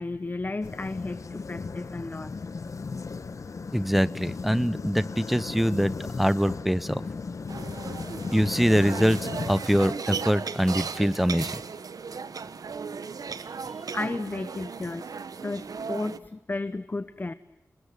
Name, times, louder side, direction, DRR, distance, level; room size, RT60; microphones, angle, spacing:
voice 1, 0.0-2.3 13.9-15.1 15.4-17.3, left 3 dB, 30° left, 13 dB, 0.9 m, -33 dB
sound 1, 0.6-10.3, left 4 dB, 60° left, 1.2 m, -36 dB
voice 2, 3.7-7.0 8.3-11.5, equal, ahead, 17 dB, 0.9 m, -24 dB
sound 2, 7.5-16.2, right 5 dB, 90° right, 1.1 m, -36 dB
29.0 x 21.5 x 9.2 m, 0.94 s
wide cardioid pair, 110°, 6 cm